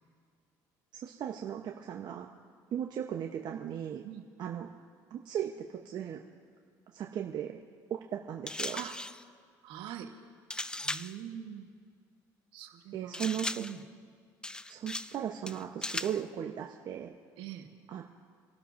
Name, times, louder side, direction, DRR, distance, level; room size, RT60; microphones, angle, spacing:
voice 1, 1.0-2.3 2.7-4.0 4.4-4.7 5.1-6.2 6.9-7.6 7.9-8.8 12.9-13.6 14.7-17.1 17.9-18.0, right 9 dB, 55° right, 2 dB, 1.0 m, -37 dB
sound 1, 8.5-9.2 10.5-11.2 13.1-13.8 14.4-15.2 15.5-16.2, left 2 dB, 10° left, 0.4 m, -38 dB
voice 2, 9.6-10.1 10.8-11.7 12.5-13.2 13.6-13.8 17.4-17.7, right 10 dB, 75° right, 4 dB, 1.5 m, -43 dB
28.0 x 12.0 x 2.7 m, 2.1 s
supercardioid pair, 75°, 9 cm